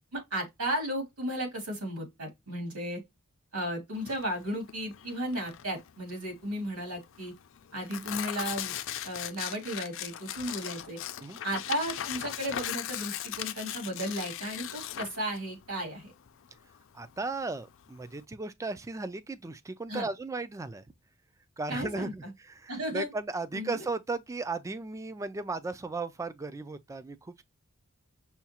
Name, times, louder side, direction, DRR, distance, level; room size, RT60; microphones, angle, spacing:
voice 1, 0.1-3.0 3.5-7.3 7.7-8.8 9.0-11.0 11.4-16.1 19.9-20.1 21.7-22.3 22.7-23.1 23.5-23.8, equal, 80° right, 2.5 m, -34 dB
Tearing, 4.0-18.2, left 11 dB, 60° left, 0.4 m, -39 dB
voice 2, 16.9-20.8 21.6-27.4, right 3 dB, 15° right, 0.3 m, -36 dB
5.6 x 2.3 x 2.8 m
head